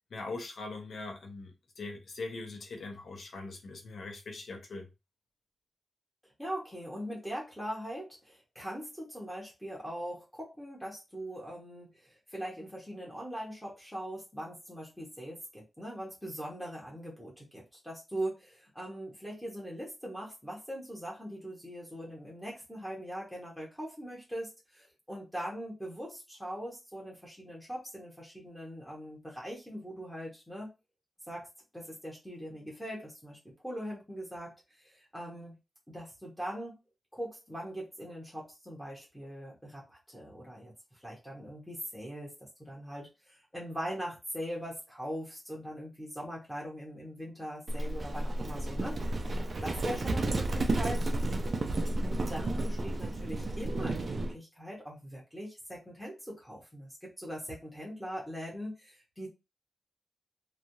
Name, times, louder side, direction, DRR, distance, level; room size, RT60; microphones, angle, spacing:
voice 1, 0.1-4.9, left 3 dB, 65° left, 0.8 m, -41 dB
voice 2, 6.4-30.7 31.3-31.5 31.7-35.5 35.9-36.8 37.1-49.4 49.6-51.1 52.0-59.3, equal, 5° left, 1.0 m, -41 dB
Livestock farm animals working animals, 47.7-54.3, right 2 dB, 40° right, 0.5 m, -32 dB
3.1 x 2.4 x 2.7 m
wide cardioid pair, 175°, 0 cm